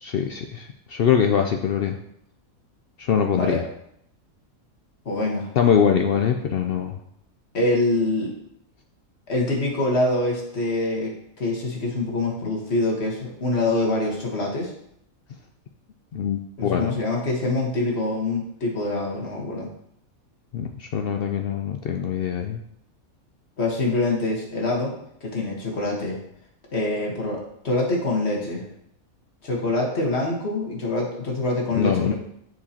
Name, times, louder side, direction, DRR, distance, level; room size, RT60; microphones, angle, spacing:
voice 1, 0.0-2.0 3.0-3.6 5.6-6.9 16.1-16.9 20.5-22.6 31.7-32.1, left 8 dB, 70° left, 4 dB, 0.5 m, -23 dB
voice 2, 5.0-5.5 7.5-8.3 9.3-14.7 16.6-19.7 23.6-24.9 25.2-26.2 26.7-28.7 29.4-32.1, left 2 dB, 50° left, -2 dB, 1.7 m, -25 dB
9.6 x 4.8 x 2.9 m, 0.73 s
omnidirectional pair, 1.5 m